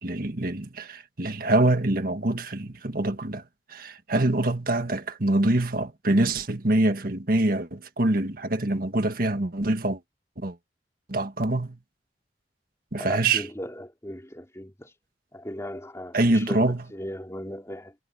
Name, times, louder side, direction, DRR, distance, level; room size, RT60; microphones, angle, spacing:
voice 1, 0.0-3.4 3.7-10.0 10.4-10.6 11.1-11.8 12.9-13.5 16.1-16.8, right 2 dB, 55° right, 1.7 m, -25 dB
voice 2, 12.9-14.9 15.3-17.9, equal, 15° left, 2.9 m, -38 dB
head